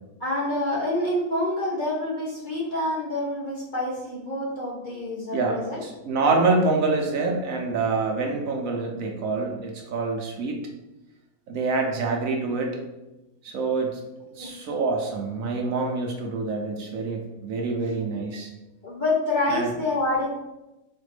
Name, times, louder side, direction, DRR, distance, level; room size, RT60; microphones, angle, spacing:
voice 1, 0.2-5.8 14.4-14.5 18.8-20.3, left 1 dB, 40° left, -5 dB, 0.8 m, -27 dB
voice 2, 5.3-10.6 11.5-12.7 13.4-14.0 14.4-18.5 19.5-19.7, right 3 dB, 65° right, 1 dB, 1.0 m, -26 dB
4.3 x 2.5 x 4.8 m, 0.99 s
omnidirectional pair, 1.6 m